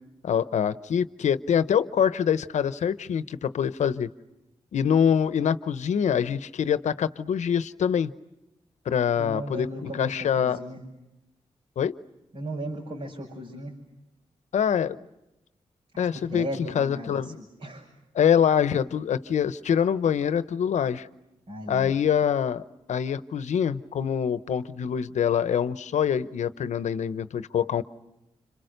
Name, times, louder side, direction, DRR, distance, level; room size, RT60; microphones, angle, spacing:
voice 1, 0.2-4.1 4.7-8.1 8.9-10.6 11.8-11.9 14.5-15.0 16.0-16.4 16.7-17.4 18.1-21.1 21.7-22.6 22.9-27.8, left 8 dB, 80° left, 14 dB, 0.9 m, -25 dB
voice 2, 9.2-10.8 12.3-13.7 15.9-17.9 21.5-21.9, right 1 dB, 60° right, -2 dB, 6.2 m, -36 dB
29.5 x 26.5 x 6.7 m, 0.94 s
cardioid pair, 55°, 12 cm